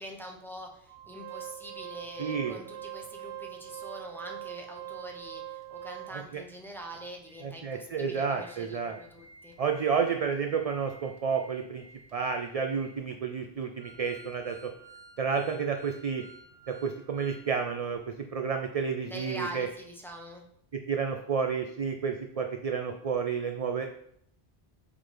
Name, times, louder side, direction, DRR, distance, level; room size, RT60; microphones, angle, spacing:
voice 1, 0.0-9.5 19.1-20.4, equal, ahead, 1 dB, 0.8 m, -44 dB
Organ, 0.9-6.4 6.9-7.0 7.3-7.4 7.9-17.5 17.8-17.9, right 11 dB, 85° right, 1.3 m, -46 dB
voice 2, 2.2-2.6 6.1-6.4 7.4-9.0 9.6-11.8 12.1-14.7 15.2-16.2 16.7-19.7 20.9-23.9, right 6 dB, 55° right, 5 dB, 0.4 m, -31 dB
7.7 x 3.9 x 3.3 m, 0.70 s
omnidirectional pair, 1.1 m